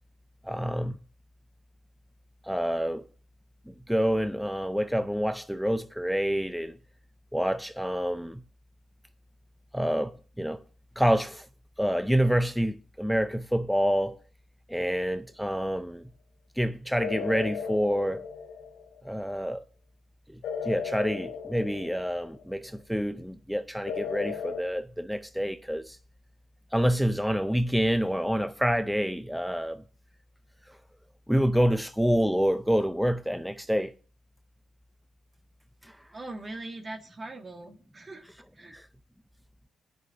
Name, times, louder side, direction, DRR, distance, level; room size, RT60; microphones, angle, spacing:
voice 1, 0.4-1.0 2.4-3.1 3.7-6.8 7.3-8.4 9.7-10.6 11.0-11.5 11.8-14.2 14.7-16.1 16.6-18.3 19.0-19.6 20.3-26.0 26.7-29.8 30.7-30.8 31.3-33.9 35.8-36.0 38.7-38.9, equal, ahead, 0.6 m, -27 dB
sound 1, 17.0-19.1 20.4-22.5 23.9-24.6, left 6 dB, 80° left, 2.0 m, -36 dB
voice 2, 36.1-38.2 38.5-38.8, right 2 dB, 35° right, 1.6 m, -41 dB
9.8 x 6.1 x 7.1 m
cardioid pair, 70°, 0 cm